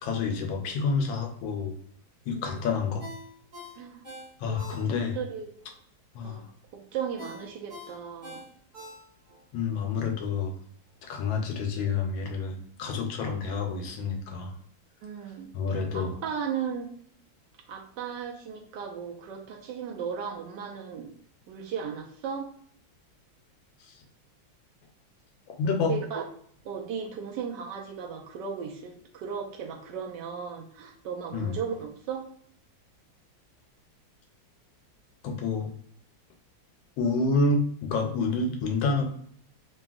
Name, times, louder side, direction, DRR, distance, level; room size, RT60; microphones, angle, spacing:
voice 1, 0.0-1.7 2.3-3.0 4.4-5.2 6.1-6.4 9.5-10.5 11.0-14.5 15.5-16.2 23.8-23.9 25.6-26.0 31.3-31.6 35.2-35.7 37.0-39.0, left 4 dB, 80° left, 4 dB, 1.3 m, -28 dB
Ringtone, 3.0-5.3 5.6-5.7 7.2-9.4 9.8-9.9, equal, 45° right, 0.6 m, -44 dB
voice 2, 4.8-5.5 6.2-6.5 6.7-8.4 15.0-16.9 17.7-21.1 21.5-22.5 25.9-26.2 26.6-32.3, right 7 dB, 75° right, 2 dB, 1.1 m, -36 dB
3.5 x 2.3 x 2.4 m, 0.63 s
omnidirectional pair, 2.1 m